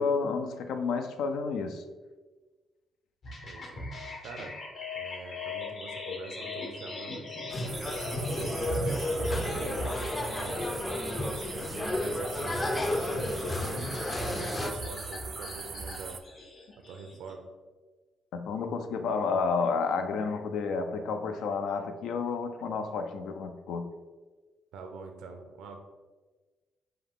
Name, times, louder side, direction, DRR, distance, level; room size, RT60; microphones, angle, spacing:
voice 1, 0.0-1.8 18.3-23.9, left 5 dB, 80° left, 7 dB, 0.4 m, -30 dB
sound 1, 3.2-17.3, left 1 dB, 55° left, 1.1 m, -39 dB
voice 2, 3.4-3.9 4.2-4.5 4.9-7.5 8.1-13.8 14.2-16.2 16.9-17.5 24.7-25.8, right 4 dB, 85° right, 4 dB, 0.6 m, -44 dB
sound 2, 7.5-14.7, left 1 dB, 25° left, 0.5 m, -32 dB
sound 3, 7.7-16.2, right 5 dB, 45° right, 0.3 m, -42 dB
5.2 x 2.3 x 3.7 m, 1.3 s
cardioid pair, 90°, 0 cm